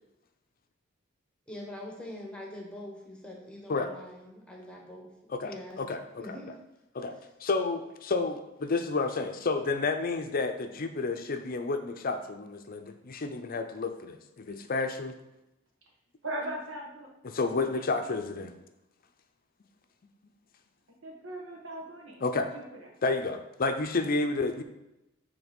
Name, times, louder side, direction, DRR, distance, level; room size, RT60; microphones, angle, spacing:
voice 1, 1.5-5.1 5.4-5.8 6.2-6.5, left 1 dB, 5° left, -1 dB, 1.2 m, -43 dB
voice 2, 5.3-6.4 6.9-7.1 7.4-15.2 17.2-18.5 22.2-22.5 23.0-24.6, left 3 dB, 45° left, 7 dB, 0.6 m, -30 dB
voice 3, 16.2-17.1 17.5-17.8 21.0-22.2 22.5-22.6, right 1 dB, 80° right, 0 dB, 1.6 m, -38 dB
7.2 x 3.5 x 5.3 m, 0.92 s
head